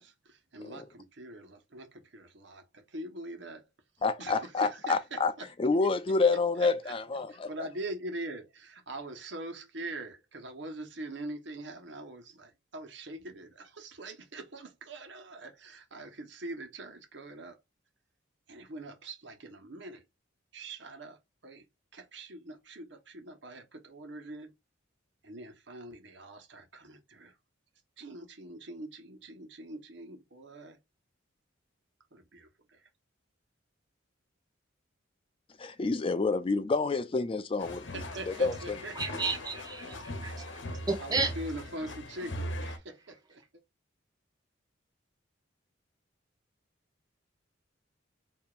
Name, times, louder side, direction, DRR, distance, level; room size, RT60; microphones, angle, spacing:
voice 1, 0.0-3.6 4.2-4.9 5.4-5.5 5.8-5.9 6.8-6.9 7.3-17.6 18.5-20.0 20.5-21.6 21.9-24.5 25.2-27.3 28.0-30.8 32.1-32.9 37.9-39.0 41.0-43.6, right 2 dB, 65° right, 1.2 m, -43 dB
voice 2, 4.0-5.3 5.6-7.5 35.6-38.8, left 3 dB, 30° left, 0.4 m, -28 dB
sound 1, 37.6-42.8, left 1 dB, 70° left, 0.9 m, -40 dB
voice 3, 38.9-41.3, right 3 dB, 20° right, 1.0 m, -33 dB
4.9 x 2.8 x 2.4 m
head